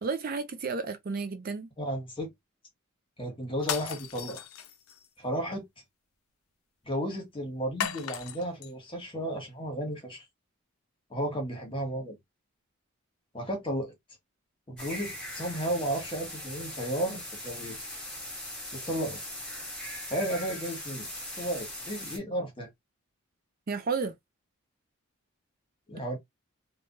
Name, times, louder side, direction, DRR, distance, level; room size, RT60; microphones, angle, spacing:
voice 1, 0.0-1.7 23.7-24.1, right 4 dB, 45° right, 0.4 m, -32 dB
voice 2, 1.8-2.3 3.2-4.4 5.2-5.6 6.9-10.2 11.1-12.2 13.3-13.9 14.7-17.8 18.8-19.2 20.1-21.1 21.4-22.7 25.9-26.2, right 1 dB, 25° left, 1.2 m, -33 dB
sound 1, 3.6-5.1 7.8-8.7, left 9 dB, 90° left, 0.5 m, -36 dB
sound 2, 14.8-22.2, left 1 dB, 5° left, 1.0 m, -40 dB
3.3 x 2.2 x 2.5 m
head